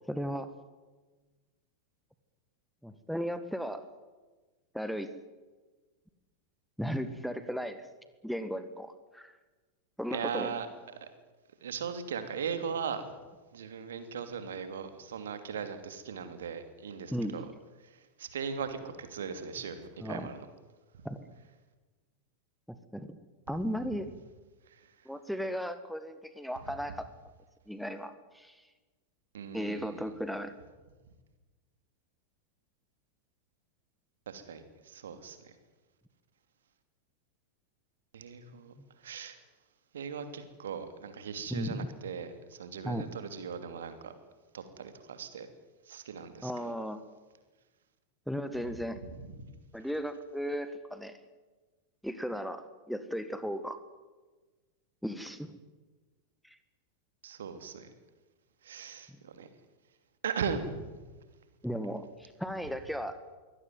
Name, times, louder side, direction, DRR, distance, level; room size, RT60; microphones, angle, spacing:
voice 1, 0.1-0.5 2.8-3.8 4.7-5.1 6.8-7.9 8.2-9.3 10.0-10.6 17.1-17.4 20.0-20.3 21.0-21.2 22.7-23.2 23.5-24.1 25.0-27.1 27.7-28.6 29.5-30.5 41.5-41.9 42.8-43.1 46.4-47.0 48.3-49.0 49.7-51.2 52.0-53.8 55.0-55.6 56.4-56.6 61.6-63.2, equal, ahead, 11 dB, 1.6 m, -36 dB
voice 2, 10.1-10.7 11.0-11.1 11.6-13.0 13.5-17.5 18.2-20.4 29.3-30.1 34.3-35.5 38.1-38.7 39.0-39.4 39.9-42.3 42.6-44.1 44.5-45.5 45.9-46.7 57.2-57.9 58.6-59.5 60.2-61.0, right 6 dB, 65° right, 9 dB, 2.9 m, -38 dB
23.0 x 17.0 x 9.5 m, 1.3 s
figure-of-eight pair, 90°, 0 cm